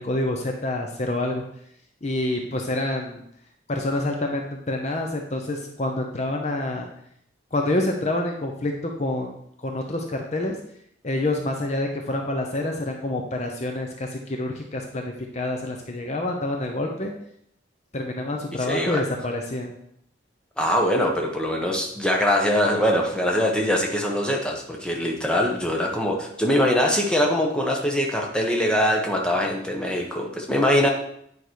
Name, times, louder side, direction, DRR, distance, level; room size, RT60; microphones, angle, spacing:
voice 1, 0.0-1.4 2.0-3.2 3.7-6.9 7.5-9.3 9.6-10.6 11.0-17.1 17.9-19.7, left 1 dB, 35° left, 2 dB, 0.7 m, -27 dB
voice 2, 18.5-19.0 20.6-30.9, equal, 5° left, 0 dB, 1.1 m, -23 dB
9.1 x 4.9 x 4.7 m, 0.71 s
head